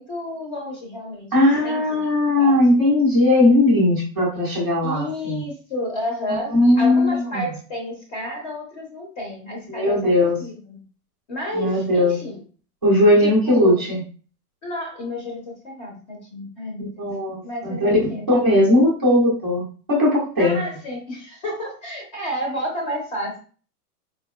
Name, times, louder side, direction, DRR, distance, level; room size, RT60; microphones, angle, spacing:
voice 1, 0.0-2.0 2.4-2.6 4.8-10.0 10.4-10.8 11.3-12.4 13.2-13.9 14.6-17.1 17.4-18.3 20.4-23.4, left 1 dB, 30° left, 0 dB, 0.6 m, -31 dB
voice 2, 1.3-5.5 6.5-7.4 9.7-10.4 11.5-12.1 12.8-14.0 16.8-18.0 18.3-19.6 19.9-20.6, left 1 dB, 15° right, -12 dB, 0.3 m, -18 dB
3.7 x 2.6 x 2.2 m, 0.39 s
hypercardioid pair, 155°, 46 cm